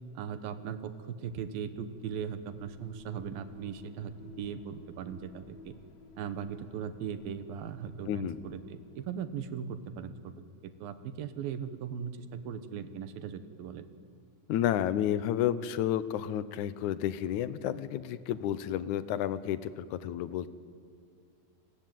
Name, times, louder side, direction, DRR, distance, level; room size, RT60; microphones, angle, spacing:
voice 1, 0.2-5.7 6.2-10.3 10.6-13.8, right 7 dB, 80° right, 11 dB, 3.1 m, -39 dB
sound 1, 1.7-9.5, left 2 dB, 85° left, 4.5 m, -54 dB
voice 2, 8.1-8.4 14.5-20.5, left 11 dB, 70° left, 15 dB, 2.0 m, -31 dB
30.0 x 21.0 x 9.4 m, 2.3 s
omnidirectional pair, 4.1 m